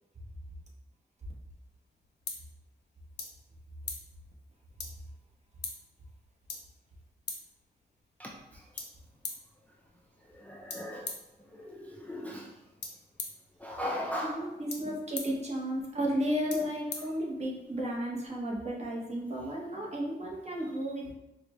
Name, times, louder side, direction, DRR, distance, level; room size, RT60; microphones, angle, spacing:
sound 1, 1.5-17.8, left 4 dB, 80° left, 0.7 m, -46 dB
voice 1, 8.2-8.8 10.3-11.1 11.5-12.5 13.6-14.4 14.8-14.9, left 1 dB, 10° left, -2 dB, 0.4 m, -38 dB
voice 2, 13.8-21.1, equal, 40° right, -2 dB, 0.9 m, -33 dB
4.8 x 2.2 x 3.0 m, 0.95 s
wide cardioid pair, 115°, 18 cm